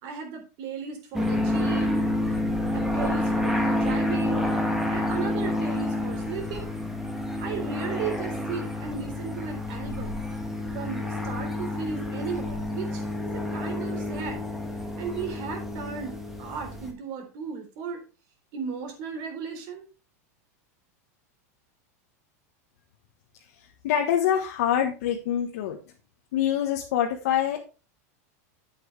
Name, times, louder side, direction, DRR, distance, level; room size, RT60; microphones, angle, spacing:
voice 1, 0.0-2.1 2.7-4.5 4.9-6.8 7.4-10.2 10.7-13.0 13.3-14.5 15.0-18.0 18.5-19.9, right 6 dB, 50° right, 4 dB, 3.7 m, -35 dB
sound 1, 1.1-16.9, left 1 dB, 5° right, 1.9 m, -29 dB
voice 2, 23.8-25.8 26.3-27.6, left 10 dB, 70° left, 1 dB, 1.5 m, -25 dB
9.0 x 8.2 x 3.4 m, 0.32 s
supercardioid pair, 135°, 9 cm